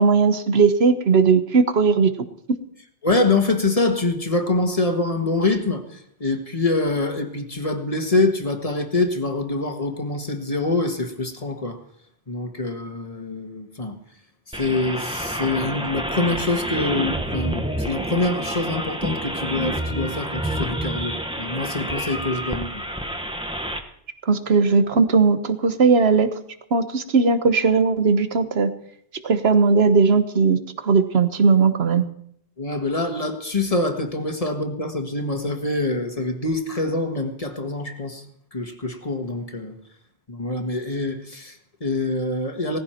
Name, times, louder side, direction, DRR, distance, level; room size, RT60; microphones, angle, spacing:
voice 1, 0.0-2.1 24.3-26.3 26.7-28.7 29.2-32.1, right 4 dB, 70° right, 10 dB, 1.4 m, -18 dB
voice 2, 3.0-11.8 12.3-14.0 14.5-22.8 32.6-38.2 38.5-39.7 40.3-42.8, left 2 dB, 35° left, 5 dB, 1.6 m, -25 dB
sound 1, 14.5-23.8, right 1 dB, 5° right, 1.1 m, -28 dB
18.0 x 15.0 x 4.5 m, 0.68 s
omnidirectional pair, 1.1 m